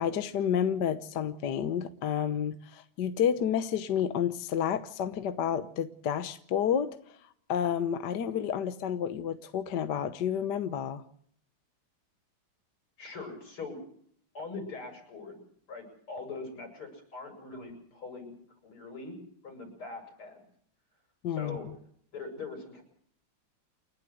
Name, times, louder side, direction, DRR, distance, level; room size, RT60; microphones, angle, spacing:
voice 1, 0.0-7.0 7.5-11.0 21.2-21.6, left 8 dB, 60° left, 10 dB, 1.5 m, -30 dB
voice 2, 13.0-13.8 14.3-15.4 15.7-18.3 18.6-19.2 19.4-20.4 21.3-21.7 22.1-22.8, left 3 dB, 85° left, 3 dB, 8.5 m, -42 dB
29.5 x 11.5 x 7.8 m, 0.64 s
omnidirectional pair, 2.3 m